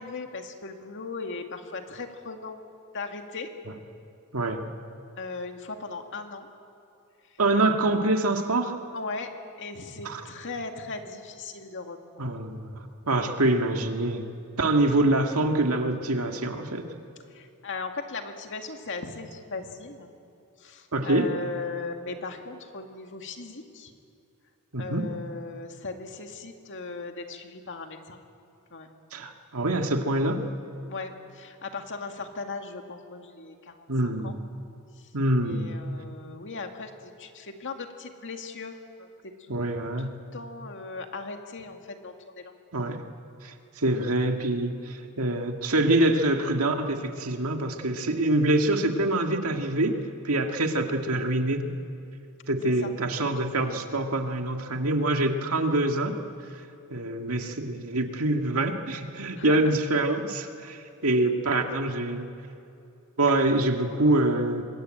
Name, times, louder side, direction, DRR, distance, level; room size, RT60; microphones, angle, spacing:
voice 1, 0.0-2.6 2.9-3.5 5.2-6.5 8.9-9.3 9.6-12.0 17.3-20.1 20.6-23.9 24.8-28.2 28.7-29.0 30.9-33.8 34.0-34.3 35.0-35.1 35.4-39.6 40.0-42.5 52.6-52.9 59.3-59.7, left 3 dB, 55° left, 4 dB, 2.1 m, -38 dB
voice 2, 7.4-8.8 10.0-10.2 12.2-14.2 14.6-16.9 20.9-21.3 24.7-25.1 29.1-30.4 33.9-34.4 35.1-35.7 39.5-40.2 42.7-43.0 43.4-50.0 50.2-51.7 52.5-56.2 56.9-62.3 63.2-64.6, right 2 dB, 70° right, 4 dB, 2.1 m, -25 dB
25.5 x 21.5 x 9.0 m, 2.6 s
head